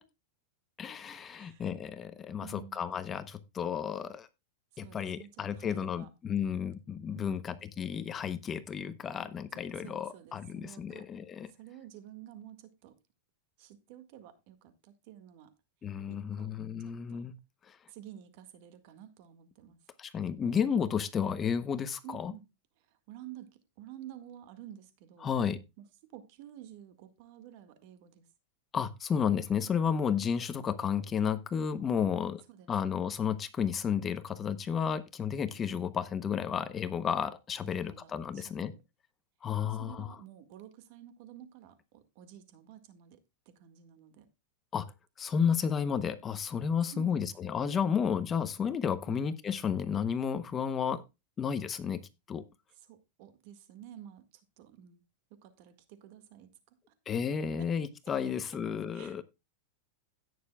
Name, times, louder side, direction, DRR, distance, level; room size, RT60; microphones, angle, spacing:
voice 1, 0.8-4.3 4.8-11.5 15.8-17.3 17.7-17.8 20.0-22.3 25.2-25.6 28.7-32.4 32.7-38.7 39.4-40.2 44.7-44.9 45.2-51.0 51.4-52.0 52.3-52.4 57.1-59.2, left 7 dB, 20° left, 0.8 m, -32 dB
voice 2, 1.3-1.6 2.4-3.0 4.8-6.1 7.1-7.6 9.5-11.1 11.6-13.0 13.6-15.5 16.1-16.5 16.8-17.3 17.9-19.8 22.0-22.5 22.9-25.4 25.8-28.3 32.5-32.7 37.6-38.8 39.6-44.3 46.9-47.6 49.1-49.2 52.9-55.0 55.3-56.5 57.6-57.7 58.2-58.3 58.9-59.2, right 11 dB, 55° right, 1.7 m, -51 dB
17.0 x 6.7 x 2.3 m
supercardioid pair, 145°, 0 cm